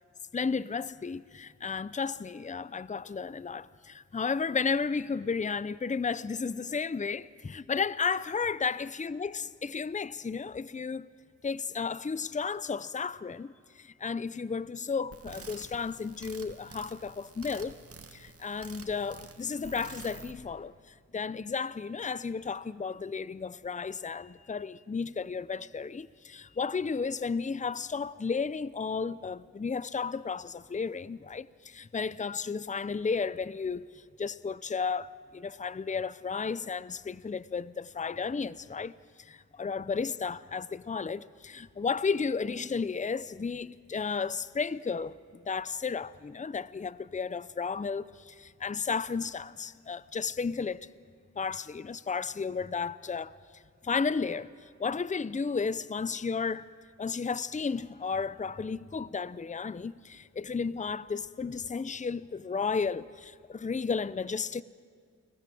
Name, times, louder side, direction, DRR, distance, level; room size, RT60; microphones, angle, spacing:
voice 1, 0.3-11.1 11.4-17.8 18.1-50.9 51.4-56.7 57.0-64.6, left 5 dB, 25° left, 0.6 m, -33 dB
sound 1, 15.1-20.3, right 4 dB, 50° right, 2.2 m, -48 dB
29.5 x 20.5 x 7.7 m
cardioid pair, 70°, 29 cm